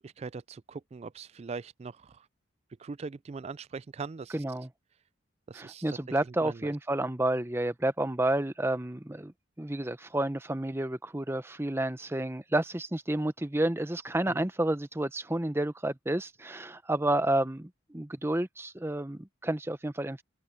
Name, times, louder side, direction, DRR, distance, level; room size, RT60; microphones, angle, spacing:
voice 1, 0.0-2.1 2.8-4.3 5.5-5.8 6.4-6.7 14.3-14.5, right 4 dB, 35° right, 0.3 m, -41 dB
voice 2, 4.3-4.7 5.5-9.3 9.6-20.2, right 1 dB, 10° right, 0.7 m, -30 dB
head